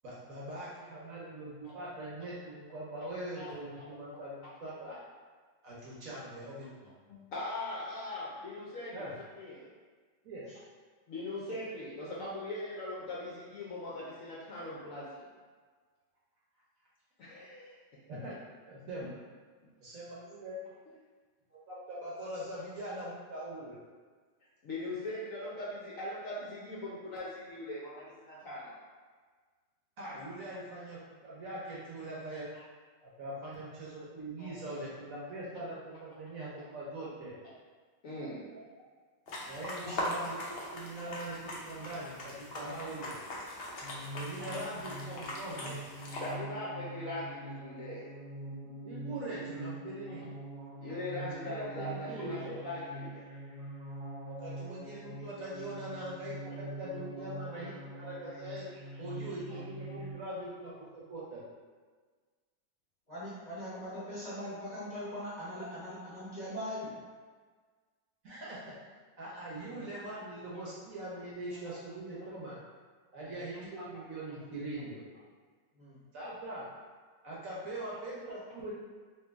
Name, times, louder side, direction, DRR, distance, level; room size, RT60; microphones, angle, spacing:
voice 1, 0.0-5.0 5.6-7.0 8.9-9.1 10.2-10.5 18.1-18.3 18.6-19.1 19.8-20.6 21.5-23.9 30.0-32.5 33.0-37.4 38.5-38.8 39.4-43.2 44.1-45.9 48.8-50.3 51.1-52.5 54.3-58.7 59.0-61.4 68.2-68.7 69.2-72.6 73.1-75.1 76.1-76.7 77.2-78.7, right 1 dB, 60° right, -6 dB, 1.0 m, -42 dB
voice 2, 3.3-3.9 7.1-9.1 9.4-9.7 11.1-15.3 17.2-17.8 24.6-28.8 32.5-32.6 34.4-34.8 38.0-38.5 39.8-40.1 41.0-41.1 44.4-44.6 45.1-45.2 46.2-48.1 50.8-53.2 59.5-59.6 69.7-69.9, left 1 dB, 65° left, -7 dB, 0.9 m, -41 dB
sound 1, 39.3-46.3, left 1 dB, 90° left, 0.5 m, -41 dB
sound 2, 43.8-60.1, right 1 dB, 85° right, 1.5 m, -44 dB
voice 3, 63.1-67.0 73.2-73.4 75.7-76.0, equal, 35° left, -11 dB, 0.8 m, -41 dB
3.0 x 2.9 x 3.4 m, 1.5 s
omnidirectional pair, 1.9 m